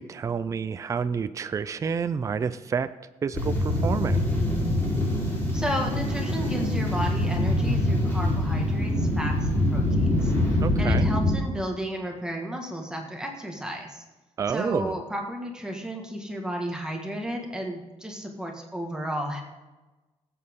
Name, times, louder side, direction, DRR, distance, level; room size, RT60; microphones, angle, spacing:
voice 1, 0.0-2.9 3.2-4.2 10.6-11.1 14.4-15.0, right 6 dB, 25° right, 12 dB, 0.4 m, -29 dB
sound 1, 3.3-11.3, left 1 dB, 20° left, 4.1 m, -24 dB
voice 2, 5.5-10.3 10.8-14.0 14.5-19.4, equal, 5° right, 1 dB, 1.7 m, -33 dB
18.0 x 8.5 x 3.7 m, 1.2 s
cardioid pair, 140°, 12 cm